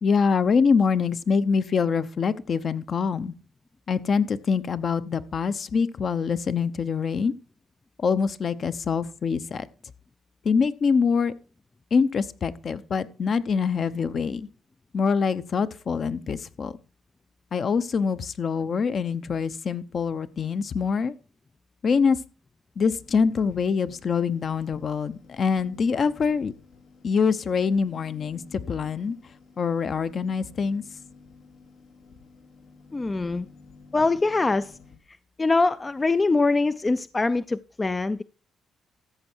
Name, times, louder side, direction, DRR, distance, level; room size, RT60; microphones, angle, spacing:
voice 1, 0.0-3.3 3.9-7.3 8.0-9.7 10.4-11.3 11.9-14.5 14.9-16.7 17.5-21.1 21.8-22.2 22.8-26.5 27.0-29.1 29.6-30.8, left 5 dB, 50° left, 0.9 m, -24 dB
sound 1, 22.9-35.0, left 4 dB, 85° left, 2.6 m, -51 dB
voice 2, 32.9-33.5 33.9-34.8 35.4-38.2, left 3 dB, 25° left, 0.4 m, -23 dB
14.0 x 7.8 x 4.5 m
cardioid pair, 90°, 0 cm